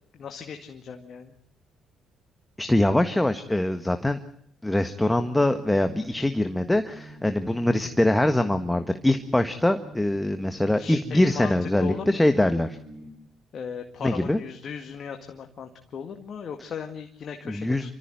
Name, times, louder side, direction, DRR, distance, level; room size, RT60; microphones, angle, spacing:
voice 1, 0.1-1.3 10.8-12.4 13.5-17.9, left 6 dB, 55° left, 5 dB, 2.0 m, -37 dB
voice 2, 2.6-4.2 4.6-12.8 14.0-14.4 17.5-17.9, left 1 dB, 10° left, 8 dB, 1.5 m, -23 dB
sound 1, 4.9-13.1, right 1 dB, 75° right, 6.6 m, -47 dB
28.0 x 14.0 x 9.2 m, 0.69 s
supercardioid pair, 60°, 0 cm